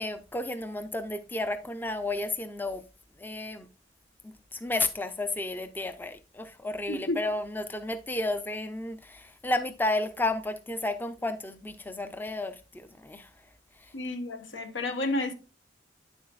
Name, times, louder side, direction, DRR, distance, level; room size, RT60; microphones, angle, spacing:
voice 1, 0.0-2.8 3.2-3.7 4.2-13.3 13.8-13.9, left 2 dB, 10° left, 0.4 m, -32 dB
voice 2, 6.9-7.2 13.9-15.3, left 2 dB, 85° left, 1.2 m, -31 dB
9.4 x 7.1 x 2.4 m
head